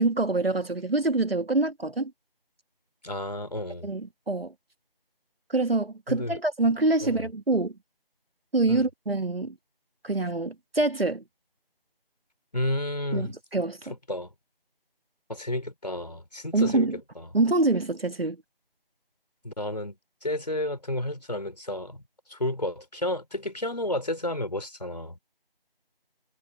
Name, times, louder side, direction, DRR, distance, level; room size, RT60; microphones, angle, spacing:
voice 1, 0.0-2.1 3.8-4.5 5.5-7.7 8.5-9.6 10.0-11.2 13.1-13.9 16.5-17.0 17.3-18.4, right 2 dB, 80° right, 2.1 m, -25 dB
voice 2, 3.0-3.9 6.1-6.4 7.0-7.3 8.7-8.9 12.5-13.3 14.1-14.3 15.3-16.9 17.2-17.3 19.4-20.0 20.2-22.0 22.3-25.2, left 1 dB, 45° left, 3.9 m, -31 dB
figure-of-eight pair, 180°, 29 cm